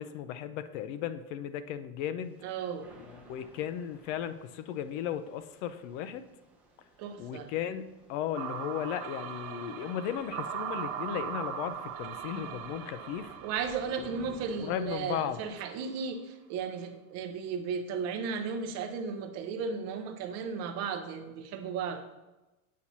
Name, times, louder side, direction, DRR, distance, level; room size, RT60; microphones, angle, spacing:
voice 1, 0.0-2.4 3.0-6.2 7.2-13.4 14.0-14.1 14.5-15.4, left 10 dB, 60° left, 12 dB, 0.5 m, -36 dB
Thunder / Rain, 2.2-15.5, right 2 dB, 5° right, 0.7 m, -58 dB
voice 2, 2.4-2.9 7.0-7.5 13.4-22.0, right 6 dB, 40° right, 7 dB, 0.6 m, -35 dB
sound 1, 8.3-15.5, right 9 dB, 85° right, 0.9 m, -40 dB
8.3 x 2.8 x 6.0 m, 1.0 s
supercardioid pair, 165°, 41 cm